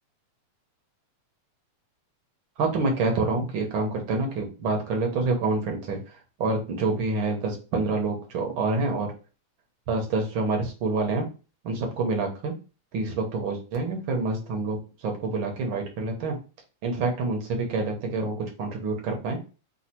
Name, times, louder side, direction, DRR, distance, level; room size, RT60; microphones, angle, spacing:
voice 1, 2.6-9.1 9.9-11.3 11.6-12.6 12.9-16.3 16.8-19.4, right 3 dB, 60° right, 1 dB, 1.3 m, -27 dB
4.8 x 2.4 x 4.2 m, 0.34 s
omnidirectional pair, 3.4 m